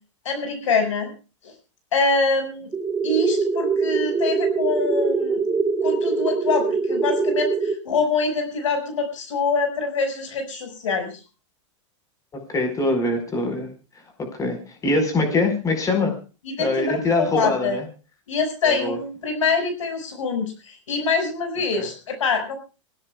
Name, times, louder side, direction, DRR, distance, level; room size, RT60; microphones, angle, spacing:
voice 1, 0.3-1.1 1.4-1.5 1.9-2.7 3.0-5.4 5.8-11.2 16.6-17.8 18.3-22.6, left 4 dB, 80° left, 6 dB, 5.5 m, -24 dB
sound 1, 2.7-7.7, right 4 dB, 15° right, 1.3 m, -23 dB
voice 2, 12.3-13.7 14.2-16.2 16.6-17.8 18.6-19.0 21.8-21.9, left 2 dB, 20° left, 5 dB, 4.7 m, -23 dB
27.0 x 16.0 x 2.3 m, 0.32 s
hypercardioid pair, 115°, 16 cm